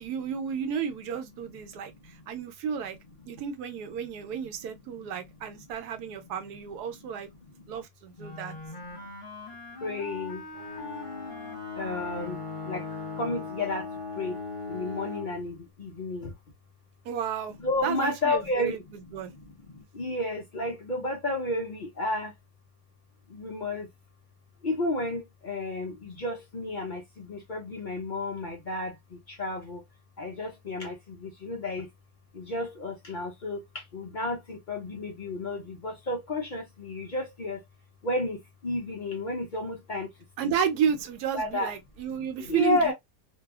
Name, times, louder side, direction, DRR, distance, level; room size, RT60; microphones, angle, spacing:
voice 1, 0.0-3.0 3.3-7.3 7.7-8.5 17.0-19.3 40.4-42.9, right 7 dB, 80° right, 1.2 m, -32 dB
Wind instrument woodwind instrument, 8.2-13.5, left 2 dB, 35° left, 1.1 m, -42 dB
voice 2, 9.8-10.4 11.8-12.4 12.7-12.8 13.2-13.8 14.2-14.3 14.7-15.5 15.8-16.3 17.6-18.8 20.0-22.3 23.3-23.9 24.6-28.9 29.4-29.8 30.2-30.9 31.2-31.9 32.4-33.6 33.9-37.6 38.0-38.4 38.6-40.1 40.4-40.5 41.3-41.7 42.5-42.9, left 2 dB, 70° left, 0.4 m, -31 dB
Bowed string instrument, 10.5-15.4, left 4 dB, 40° right, 0.8 m, -38 dB
2.7 x 2.4 x 2.3 m
omnidirectional pair, 1.7 m